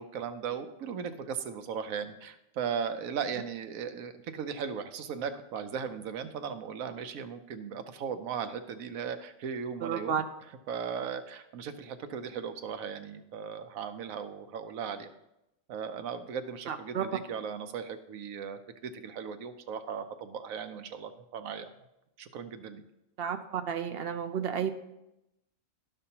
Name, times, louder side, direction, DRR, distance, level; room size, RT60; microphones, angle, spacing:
voice 1, 0.0-10.2 10.7-15.1 15.7-21.7 22.2-22.8, right 7 dB, 90° right, 9 dB, 1.1 m, -37 dB
voice 2, 9.8-10.2 16.7-17.0 23.2-24.7, right 8 dB, 60° right, 8 dB, 0.7 m, -32 dB
12.5 x 5.3 x 2.8 m, 0.88 s
omnidirectional pair, 1.4 m